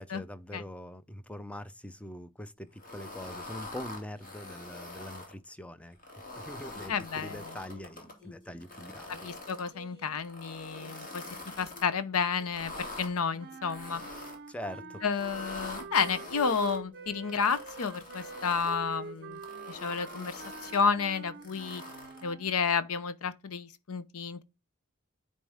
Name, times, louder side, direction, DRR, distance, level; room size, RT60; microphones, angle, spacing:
voice 1, 0.0-6.0 6.4-9.3 14.5-15.0, left 1 dB, 5° left, 0.5 m, -43 dB
sound 1, 2.8-5.3 5.9-8.1 8.6-9.7 10.2-11.9 12.4-13.1 13.7-14.5 15.1-16.8 17.3-18.8 19.3-20.8 21.4-22.3, left 2 dB, 40° left, 2.5 m, -44 dB
sound 2, 6.7-10.4 10.7-14.3 14.7-18.4 18.7-22.3, left 1 dB, 20° left, 3.8 m, -57 dB
voice 2, 6.9-7.4 9.1-11.2 11.6-14.0 15.0-19.4 19.7-21.8 22.2-24.4, left 5 dB, 75° left, 0.7 m, -31 dB
sound 3, 13.4-22.6, right 4 dB, 45° right, 0.6 m, -45 dB
9.6 x 4.2 x 3.5 m
head